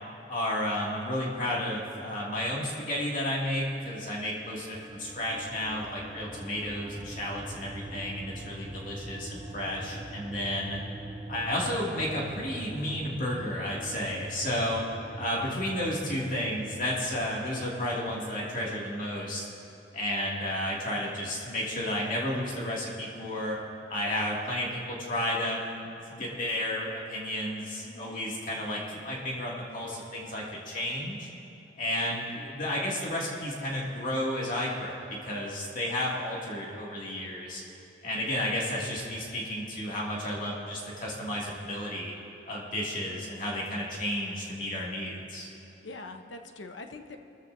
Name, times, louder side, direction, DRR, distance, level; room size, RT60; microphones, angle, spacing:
voice 1, 0.3-10.8 11.3-14.8 15.2-19.5 19.9-23.6 23.9-31.3 31.8-37.6 38.0-42.1 42.5-45.5, left 1 dB, 45° left, -5 dB, 2.4 m, -32 dB
sound 1, 4.7-17.9, right 1 dB, 20° right, 0.7 m, -43 dB
voice 2, 27.8-28.2 45.8-47.2, left 2 dB, 80° left, 5 dB, 1.0 m, -44 dB
24.0 x 14.5 x 2.7 m, 3.0 s
head